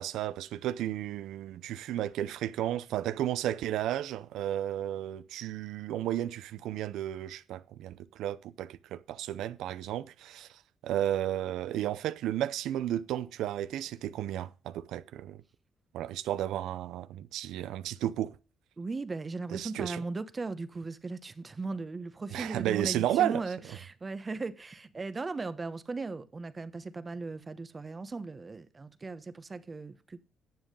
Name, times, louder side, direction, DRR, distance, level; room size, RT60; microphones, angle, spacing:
voice 1, 0.0-10.5 10.8-15.4 15.9-18.3 19.5-20.0 22.3-23.4, right 12 dB, 85° right, 0.6 m, -33 dB
voice 2, 18.8-30.2, right 3 dB, 30° right, 1.0 m, -38 dB
10.5 x 7.3 x 5.4 m
cardioid pair, 90°, 0 cm